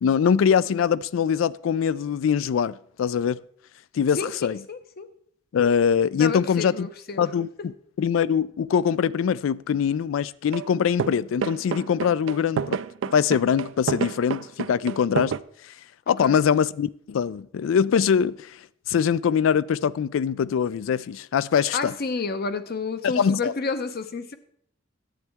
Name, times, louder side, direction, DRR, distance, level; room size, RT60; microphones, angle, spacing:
voice 1, 0.0-3.4 3.9-4.6 5.5-6.9 7.2-12.8 13.1-15.3 16.1-18.5 18.9-21.9 23.0-23.5, left 7 dB, 85° left, 0.3 m, -23 dB
voice 2, 4.1-5.1 6.2-7.3 16.2-16.4 21.7-24.3, left 4 dB, 55° left, 0.7 m, -30 dB
sound 1, 10.5-10.7 11.0-15.4, right 7 dB, 70° right, 0.4 m, -28 dB
11.0 x 8.1 x 3.5 m
head